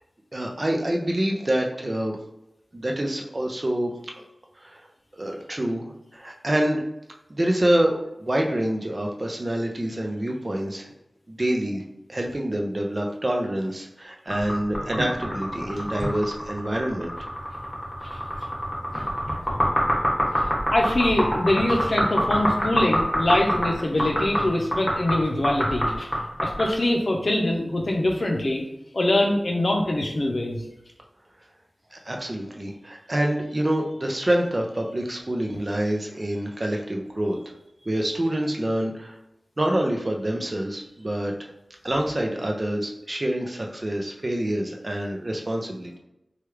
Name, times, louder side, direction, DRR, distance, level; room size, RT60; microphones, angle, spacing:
voice 1, 0.3-2.2 2.7-3.9 4.6-4.8 5.1-6.8 7.3-10.9 11.3-11.8 12.1-17.1 31.9-37.5 37.8-39.2 39.6-41.5 41.8-46.0, right 1 dB, 40° right, 1 dB, 0.5 m, -26 dB
sound 1, 14.3-26.7, equal, 20° left, 1.1 m, -26 dB
voice 2, 20.4-26.1 26.4-28.6 28.9-30.6, left 1 dB, 60° left, 1 dB, 0.6 m, -23 dB
3.1 x 2.3 x 3.1 m, 0.87 s
wide cardioid pair, 65°, 0 cm